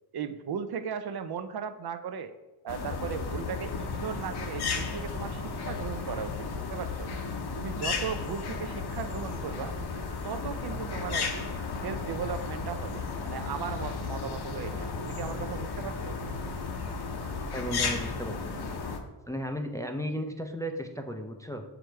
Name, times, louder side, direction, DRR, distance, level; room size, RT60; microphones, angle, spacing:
voice 1, 0.1-2.3 2.6-7.1 7.6-9.7 10.2-11.5 11.8-16.2, right 7 dB, 60° right, 10 dB, 0.6 m, -37 dB
sound 1, 2.7-19.0, left 4 dB, 60° left, 1.0 m, -34 dB
voice 2, 17.5-18.7 19.3-21.6, equal, 10° left, 5 dB, 0.4 m, -35 dB
6.3 x 5.0 x 4.5 m, 1.1 s
wide cardioid pair, 120°, 43 cm